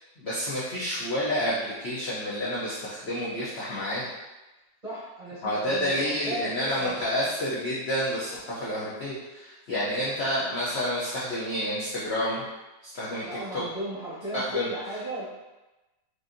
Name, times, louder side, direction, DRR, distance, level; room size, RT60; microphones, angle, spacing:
voice 1, 0.2-4.1 5.4-12.4 12.8-13.2 13.5-13.6 14.3-14.7, equal, 60° left, -7 dB, 0.6 m, -29 dB
voice 2, 4.8-7.4 9.9-10.4 13.2-15.2, right 1 dB, 30° right, -10 dB, 0.8 m, -36 dB
4.9 x 2.5 x 2.5 m, 1.1 s
omnidirectional pair, 1.9 m